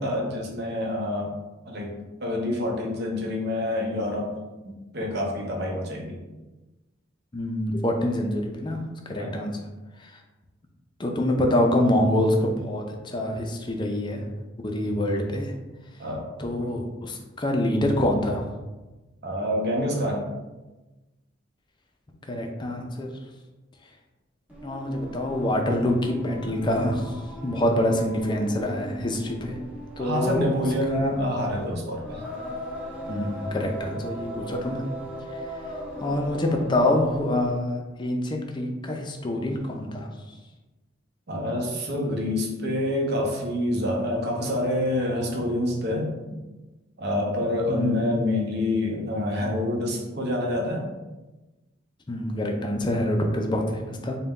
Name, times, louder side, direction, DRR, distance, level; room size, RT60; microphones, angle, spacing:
voice 1, 0.0-1.3 1.6-1.9 2.2-4.3 4.6-6.2 9.2-9.3 16.0-16.3 19.2-20.3 30.0-32.2 41.3-46.2 47.0-50.9, left 1 dB, 55° right, 0 dB, 0.7 m, -27 dB
voice 2, 7.3-9.6 10.0-10.2 11.0-14.3 14.6-15.5 16.4-18.4 22.3-23.1 24.6-27.2 27.4-29.6 30.0-30.5 30.9-31.2 33.1-34.8 36.0-40.1 47.7-48.1 52.1-54.2, left 1 dB, 25° left, 2 dB, 0.4 m, -26 dB
Singing, 24.5-37.7, equal, 5° right, 0.8 m, -38 dB
3.9 x 2.2 x 3.6 m, 1.1 s
head